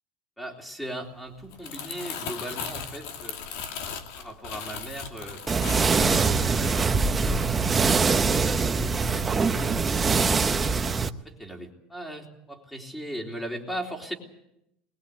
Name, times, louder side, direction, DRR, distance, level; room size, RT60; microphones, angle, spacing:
voice 1, 0.4-3.4 3.8-5.4 5.9-7.6 7.9-9.7 11.2-14.1, right 1 dB, 5° left, 2 dB, 3.7 m, -38 dB
Crumpling crinkling, 1.4-7.7 8.1-8.4, left 6 dB, 80° left, 2.6 m, -38 dB
sound 1, 5.5-11.1, right 4 dB, 15° right, 0.8 m, -23 dB
21.5 x 20.5 x 8.4 m, 0.82 s
cardioid pair, 150°, 0 cm